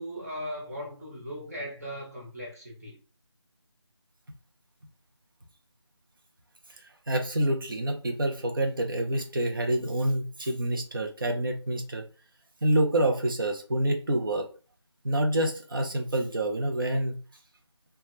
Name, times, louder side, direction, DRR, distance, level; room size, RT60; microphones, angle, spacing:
voice 1, 0.0-3.0, equal, 35° right, 1.0 m, -38 dB
voice 2, 7.1-12.0 12.6-14.5 15.0-17.2, right 1 dB, 50° right, 0.6 m, -27 dB
2.7 x 2.2 x 3.1 m
figure-of-eight pair, 170°, 15 cm